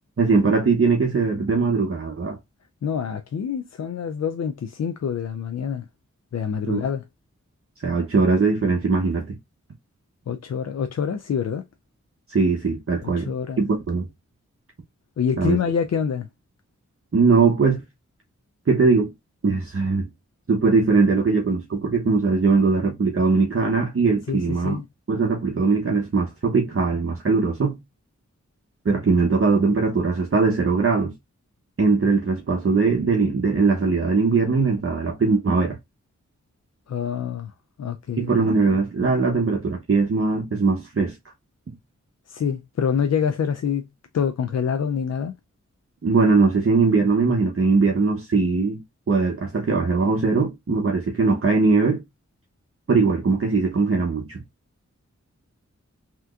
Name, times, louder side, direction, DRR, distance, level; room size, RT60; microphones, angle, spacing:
voice 1, 0.2-2.4 6.7-6.8 7.8-9.4 12.3-13.3 13.6-14.1 15.4-15.6 17.1-17.8 18.7-19.1 19.4-20.1 20.5-24.8 25.1-27.8 28.8-31.1 31.8-35.8 38.2-41.2 46.0-48.8 49.1-52.0 52.9-54.4, right 4 dB, 50° right, 0.8 m, -20 dB
voice 2, 2.8-5.9 6.3-7.0 10.3-11.6 13.0-13.6 15.2-16.3 24.3-24.8 36.9-37.5 37.8-38.5 42.3-43.8 44.1-45.3, left 7 dB, 60° left, 0.5 m, -26 dB
3.3 x 2.9 x 2.3 m
cardioid pair, 40°, 30 cm